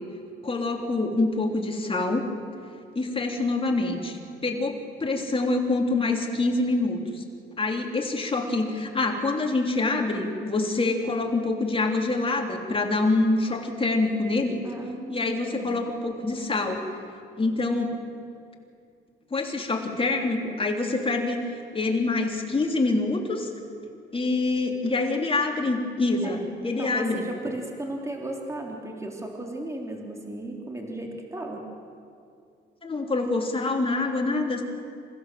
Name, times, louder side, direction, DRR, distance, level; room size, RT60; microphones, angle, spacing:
voice 1, 0.4-2.2 3.0-4.7 5.0-7.2 7.6-14.6 15.1-16.8 17.4-17.9 19.3-21.4 21.7-23.5 24.1-27.2 32.8-34.6, left 2 dB, 25° left, 2 dB, 3.6 m, -26 dB
voice 2, 14.6-15.7 26.2-26.4 26.8-31.6, right 1 dB, 15° right, 0 dB, 3.5 m, -35 dB
27.5 x 16.0 x 7.8 m, 2.4 s
cardioid pair, 90°, 20 cm